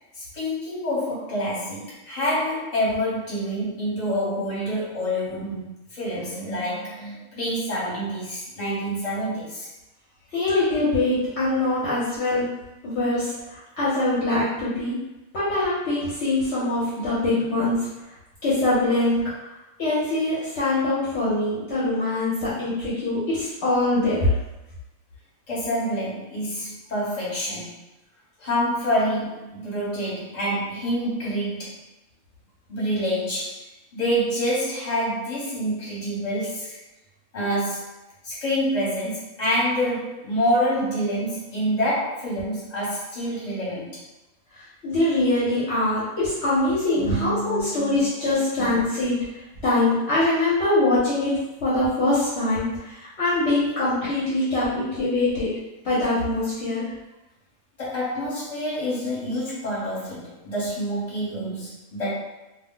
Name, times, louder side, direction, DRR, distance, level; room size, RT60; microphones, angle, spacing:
voice 1, 0.1-9.7 25.5-27.8 28.4-31.8 32.7-33.6 33.9-36.8 37.3-37.8 38.2-44.0 46.9-48.3 48.6-48.8 57.8-62.1, equal, 35° left, -7 dB, 1.1 m, -27 dB
voice 2, 10.3-12.5 12.8-15.0 15.3-17.8 18.4-19.3 19.8-24.3 44.5-49.2 49.6-51.3 51.6-55.5 55.8-56.9, left 2 dB, 60° left, -9 dB, 1.0 m, -23 dB
2.4 x 2.1 x 3.7 m, 0.99 s
omnidirectional pair, 1.4 m